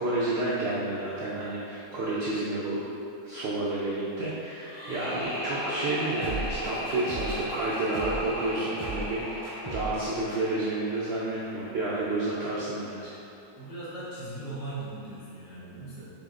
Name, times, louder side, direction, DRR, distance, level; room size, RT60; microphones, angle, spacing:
voice 1, 0.0-2.8 3.2-13.1, right 2 dB, 80° right, -6 dB, 0.5 m, -30 dB
sound 1, 4.6-11.6, equal, 55° left, 1.5 m, -36 dB
sound 2, 6.2-8.3 8.8-9.1 9.4-10.0 10.3-10.4, right 2 dB, 25° left, 1.6 m, -37 dB
voice 2, 13.6-16.1, right 2 dB, 80° left, -10 dB, 1.8 m, -39 dB
5.3 x 3.6 x 2.4 m, 2.8 s
omnidirectional pair, 1.7 m